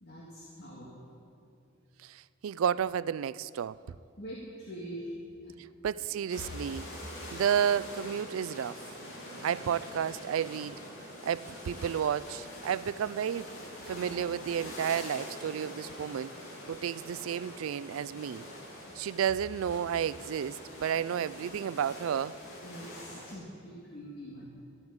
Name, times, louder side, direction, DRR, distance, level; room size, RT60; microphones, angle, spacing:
voice 1, 0.0-0.9 4.2-5.1 5.4-5.6 6.0-6.1 22.6-24.5, equal, 55° left, 1.9 m, -44 dB
voice 2, 2.0-3.8 5.8-6.9 7.3-8.8 9.4-10.8 11.2-13.5 13.9-16.3 16.7-18.4 19.0-22.4, right 8 dB, 80° right, 0.3 m, -31 dB
sound 1, 6.3-23.4, left 1 dB, 80° left, 2.7 m, -45 dB
13.5 x 7.9 x 8.8 m
head